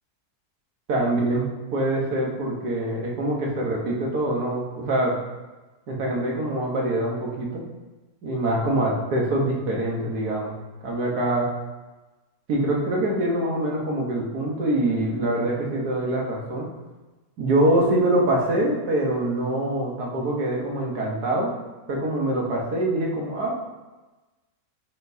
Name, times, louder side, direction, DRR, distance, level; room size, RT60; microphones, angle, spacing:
voice 1, 0.9-5.1 5.9-7.6 8.2-10.5 10.8-11.5 12.5-16.7 17.4-21.5 21.9-23.6, right 1 dB, 80° right, -3 dB, 1.8 m, -24 dB
9.2 x 4.3 x 2.8 m, 1.2 s
omnidirectional pair, 1.6 m